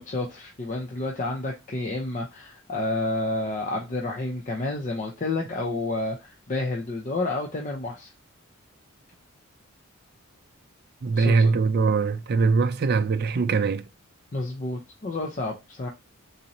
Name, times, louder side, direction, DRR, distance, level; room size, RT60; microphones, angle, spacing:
voice 1, 0.0-8.1 11.1-11.5 14.3-15.9, left 2 dB, 35° left, 0.5 m, -30 dB
voice 2, 11.0-13.8, right 4 dB, 45° right, 0.4 m, -22 dB
4.0 x 2.6 x 2.9 m
head